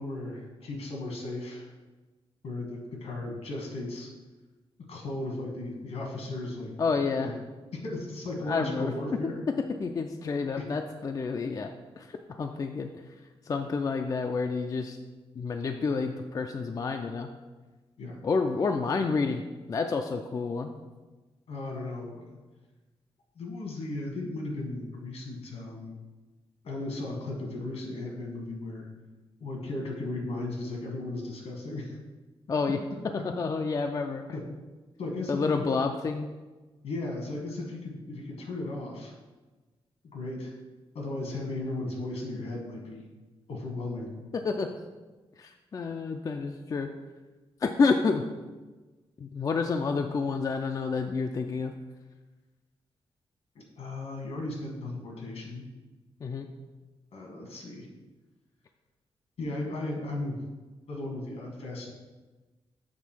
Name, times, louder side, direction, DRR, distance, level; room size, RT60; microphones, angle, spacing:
voice 1, 0.0-1.7 2.4-4.1 4.8-7.3 7.7-9.3 10.6-10.7 18.0-18.2 21.5-22.4 23.3-25.9 26.6-28.9 29.4-32.0 32.7-32.8 34.3-34.4 35.0-35.7 36.8-39.1 40.0-40.5 40.9-43.1 43.5-44.1 53.8-55.7 57.1-57.9 59.4-60.4 60.9-61.9, left 2 dB, 80° left, 1 dB, 1.7 m, -36 dB
voice 2, 6.8-7.3 8.5-8.9 9.8-11.7 12.0-12.9 13.5-15.0 15.4-17.3 18.2-19.4 19.7-20.7 32.5-32.8 33.1-34.2 35.3-36.3 44.3-44.7 45.4-46.9 47.6-48.2 49.2-51.7 56.2-56.5, left 4 dB, 35° left, 5 dB, 0.4 m, -29 dB
7.4 x 3.7 x 6.1 m, 1.2 s
wide cardioid pair, 155°, 10 cm